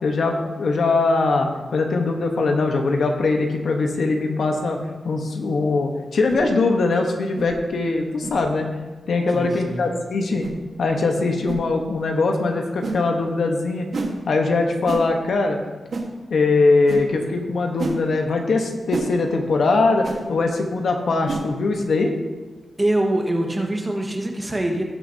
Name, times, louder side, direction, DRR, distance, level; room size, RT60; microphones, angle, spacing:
voice 1, 0.0-4.8 5.0-8.7 9.1-10.4 10.8-13.9 14.3-15.6 16.3-22.1, left 3 dB, 75° left, 3 dB, 1.1 m, -21 dB
sound 1, 6.3-6.5 7.4-7.5 8.2-8.4 9.3-9.5 10.4-10.6 11.5-11.6 12.8-13.0 13.9-14.1 14.9-15.1 15.9-16.1 16.9-17.0 17.8-18.0 18.9-19.1 20.0-20.2 21.3-21.5, right 3 dB, 65° right, 1.4 m, -29 dB
voice 2, 9.3-9.8 22.8-24.8, right 1 dB, 20° right, 1 dB, 1.5 m, -23 dB
18.0 x 6.3 x 2.8 m, 1.3 s
wide cardioid pair, 110°, 0 cm